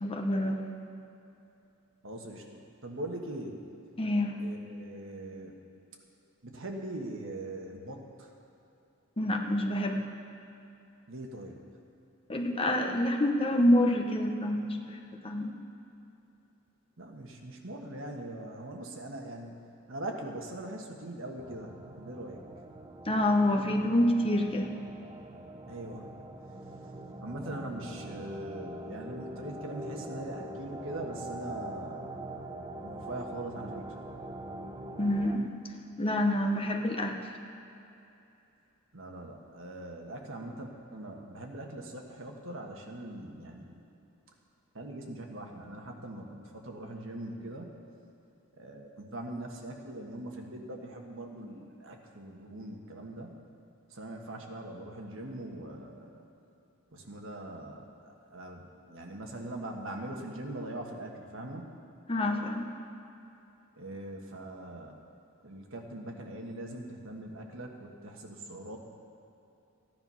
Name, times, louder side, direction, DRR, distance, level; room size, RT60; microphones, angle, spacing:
voice 1, 0.0-0.6 4.0-4.4 9.2-10.0 12.3-15.5 23.0-24.7 35.0-35.5 36.0-37.2 62.1-62.7, left 1 dB, 25° left, 2 dB, 0.9 m, -27 dB
voice 2, 2.0-3.5 4.4-5.6 6.4-8.3 11.1-11.6 17.0-19.5 19.9-22.4 25.7-26.1 27.2-32.4 32.8-34.0 38.9-43.9 44.7-47.8 48.6-53.3 53.9-56.2 56.9-61.7 63.8-65.0 65.4-68.8, right 1 dB, 65° right, 1 dB, 1.5 m, -41 dB
sound 1, 21.4-35.4, right 1 dB, 20° right, 0.7 m, -43 dB
15.0 x 10.5 x 5.6 m, 2.8 s
head